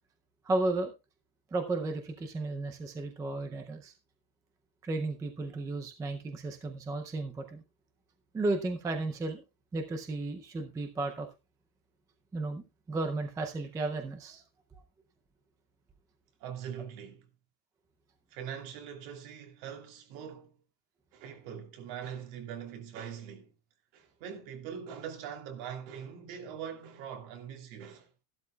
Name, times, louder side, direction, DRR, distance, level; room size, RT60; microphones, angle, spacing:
voice 1, 0.5-0.9 1.5-3.9 4.8-7.6 8.3-9.4 9.7-11.3 12.3-14.4, right 2 dB, 5° right, 0.5 m, -34 dB
voice 2, 16.4-17.3 18.3-20.6 21.1-23.5 23.9-28.1, right 8 dB, 55° right, 2.9 m, -42 dB
14.5 x 12.0 x 2.3 m
cardioid pair, 175°, 49 cm